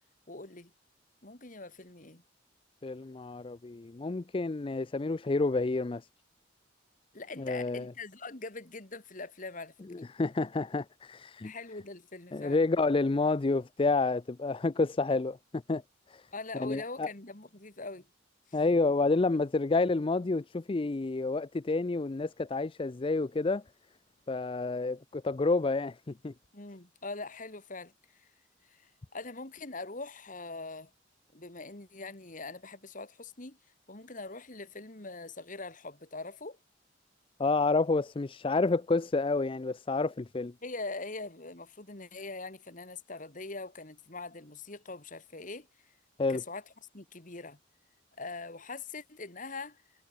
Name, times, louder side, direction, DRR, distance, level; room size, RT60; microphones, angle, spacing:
voice 1, 0.3-0.7 1.2-2.2 7.1-9.7 11.4-12.6 16.3-18.1 26.5-27.9 28.2-28.3 28.7-30.9 31.3-33.6 33.9-36.6 40.6-45.7 46.3-46.6 46.9-47.6 48.2-49.8, left 3 dB, 40° left, 2.4 m, -42 dB
voice 2, 2.8-6.1 7.4-7.9 9.9-11.5 12.3-15.8 16.1-16.3 16.6-17.1 18.5-23.6 24.3-26.3 37.4-40.5 46.2-46.4, left 3 dB, 25° left, 0.4 m, -29 dB
head